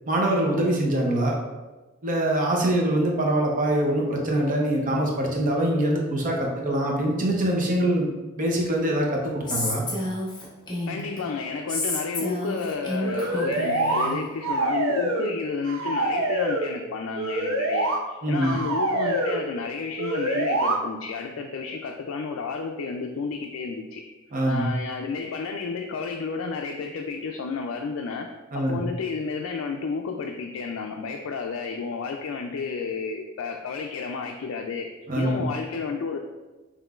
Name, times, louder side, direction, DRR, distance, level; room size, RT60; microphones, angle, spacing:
voice 1, 0.1-1.4 2.0-8.1 8.3-9.8 18.2-18.5 24.3-24.7 28.5-28.8 35.1-35.4, right 1 dB, 40° right, -1 dB, 0.7 m, -24 dB
Female speech woman speaking, 9.5-11.2 11.7-14.2, left 1 dB, 20° left, 0.8 m, -30 dB
voice 2, 10.9-24.0 24.5-36.2, left 5 dB, 80° left, 3 dB, 0.3 m, -31 dB
sound 1, 13.0-14.1 14.4-15.4 15.6-16.7 17.2-18.0 18.4-19.4 20.0-20.8, right 1 dB, 80° right, 0.6 m, -25 dB
5.6 x 3.0 x 2.4 m, 1.2 s
head